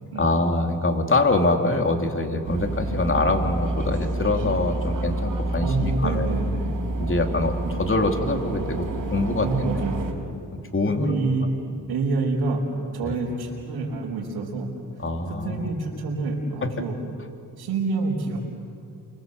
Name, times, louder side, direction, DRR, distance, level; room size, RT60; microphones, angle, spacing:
voice 1, 0.1-6.3 7.0-9.5 10.5-11.1 13.0-13.2 15.0-15.7, left 2 dB, 35° left, 4 dB, 3.4 m, -24 dB
sound 1, 2.4-10.1, right 2 dB, 55° right, 4.6 m, -28 dB
voice 2, 5.6-6.7 9.4-10.1 10.8-11.5 11.9-12.7 12.9-14.7 15.3-17.0 17.6-18.4, right 3 dB, 90° right, -5 dB, 5.1 m, -27 dB
29.5 x 24.5 x 8.1 m, 2.6 s
cardioid pair, 70°, 37 cm